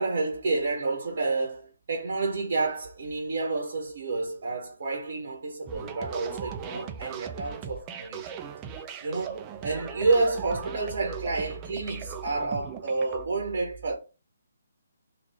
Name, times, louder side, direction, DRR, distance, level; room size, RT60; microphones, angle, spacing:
voice 1, 0.0-8.3 9.0-13.9, right 3 dB, 55° right, 0.8 m, -29 dB
sound 1, 5.7-13.3, right 7 dB, 20° right, 0.3 m, -39 dB
3.3 x 2.4 x 3.2 m
figure-of-eight pair, 140°, 0 cm